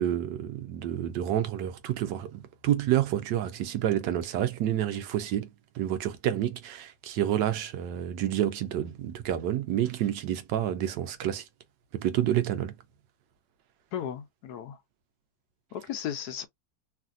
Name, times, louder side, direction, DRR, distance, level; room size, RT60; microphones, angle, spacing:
voice 1, 0.0-5.5 5.7-11.4 11.9-12.7, right 11 dB, 85° right, 1.3 m, -29 dB
voice 2, 13.9-14.7 15.7-16.4, left 9 dB, 75° left, 1.0 m, -35 dB
3.2 x 2.5 x 2.4 m
omnidirectional pair, 1.9 m